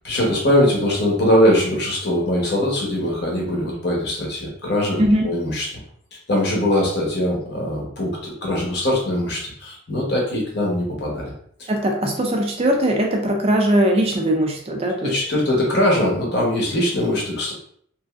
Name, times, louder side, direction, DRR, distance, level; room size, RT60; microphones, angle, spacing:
voice 1, 0.0-5.7 6.3-11.3 15.0-17.5, left 1 dB, 50° left, -2 dB, 0.9 m, -21 dB
voice 2, 11.7-15.2, right 1 dB, 30° right, 2 dB, 0.3 m, -20 dB
3.0 x 2.6 x 2.4 m, 0.64 s
head